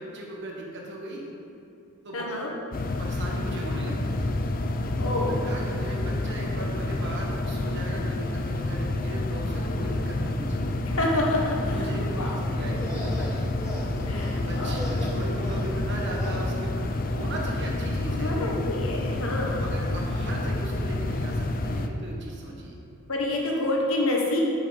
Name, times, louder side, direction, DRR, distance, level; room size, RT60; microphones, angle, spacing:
voice 1, 0.0-1.3 2.0-2.2 3.0-4.3 5.0-5.1 5.4-10.8 11.6-13.5 14.1-18.3 19.6-22.8, right 1 dB, 55° right, -2 dB, 1.5 m, -38 dB
voice 2, 2.1-2.5 5.0-5.4 10.9-11.9 12.2-12.3 14.0-14.9 18.1-19.7 23.1-24.4, left 1 dB, 75° left, -1 dB, 1.4 m, -28 dB
sound 1, 2.7-21.9, left 2 dB, 40° left, 0.4 m, -29 dB
sound 2, 12.6-16.5, left 1 dB, 15° left, 1.1 m, -39 dB
8.3 x 7.1 x 4.1 m, 2.6 s
head